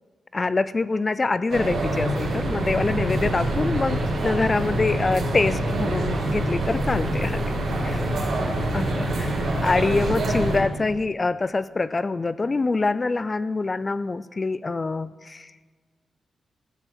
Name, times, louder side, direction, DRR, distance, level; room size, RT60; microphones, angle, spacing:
voice 1, 0.3-7.6 7.8-8.0 8.7-15.5, left 3 dB, 35° left, 16 dB, 0.4 m, -25 dB
sound 1, 1.5-10.6, right 1 dB, 70° right, 3.2 m, -25 dB
14.0 x 12.0 x 4.4 m, 1.5 s
cardioid pair, 70°, 0 cm